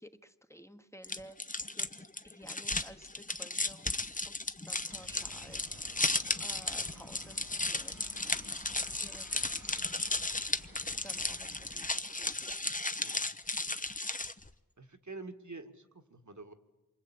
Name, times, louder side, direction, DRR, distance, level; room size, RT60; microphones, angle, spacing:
voice 1, 0.0-4.4 4.6-5.9 6.2-9.3 9.5-9.6 9.9-10.0 11.0-12.5, equal, 10° left, 9 dB, 1.2 m, -54 dB
sound 1, 1.0-14.5, left 2 dB, 25° left, 0.9 m, -35 dB
sound 2, 4.9-11.8, right 2 dB, 80° right, 3.9 m, -54 dB
voice 2, 13.0-13.3 13.6-13.8 14.8-16.5, right 3 dB, 60° right, 6 dB, 1.9 m, -48 dB
27.5 x 24.5 x 8.7 m, 1.2 s
wide cardioid pair, 45°, 34 cm